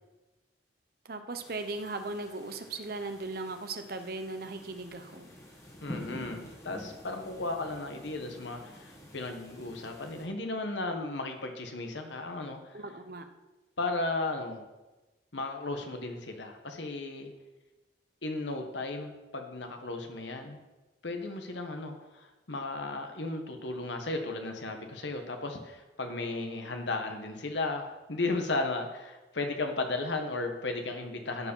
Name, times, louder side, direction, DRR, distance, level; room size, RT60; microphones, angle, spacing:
voice 1, 1.0-5.3 12.7-13.2, right 3 dB, 50° right, 8 dB, 0.8 m, -38 dB
sound 1, 1.3-10.3, left 1 dB, 15° left, 1.6 m, -48 dB
voice 2, 5.8-12.8 13.8-14.6 15.3-17.3 18.2-20.6 21.0-31.5, left 2 dB, 80° left, 5 dB, 1.2 m, -35 dB
13.5 x 4.9 x 5.5 m, 1.1 s
head